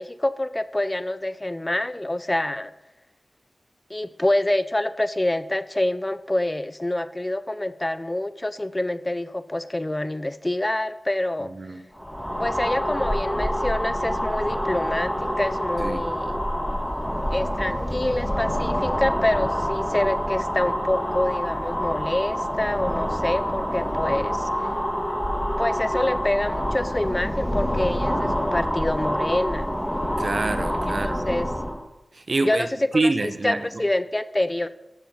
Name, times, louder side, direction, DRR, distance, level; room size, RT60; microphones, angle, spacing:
voice 1, 0.0-2.7 3.9-11.5 12.4-16.4 17.3-24.5 25.6-29.7 30.9-31.5 32.4-33.1 33.4-34.7, left 1 dB, 25° left, 14 dB, 0.6 m, -26 dB
voice 2, 11.4-11.8 15.8-16.1 30.2-31.2 32.1-32.7 32.9-33.6, right 2 dB, 60° right, 9 dB, 1.0 m, -26 dB
sound 1, 12.0-31.8, equal, 10° left, 1.8 m, -27 dB
14.0 x 7.2 x 4.5 m, 0.94 s
cardioid pair, 40°, 0 cm